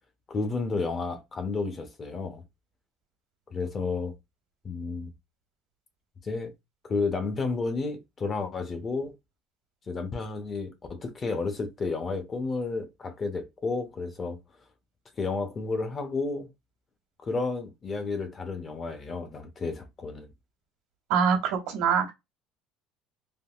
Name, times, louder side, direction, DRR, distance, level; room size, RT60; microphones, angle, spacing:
voice 1, 0.3-2.4 3.5-4.1 4.6-5.1 6.2-6.5 6.9-9.2 9.9-14.4 15.2-16.5 17.2-20.3, left 4 dB, 20° left, 0.5 m, -31 dB
voice 2, 21.1-22.1, right 6 dB, 80° right, 1.2 m, -24 dB
3.4 x 2.3 x 2.2 m
cardioid pair, 175°, 0 cm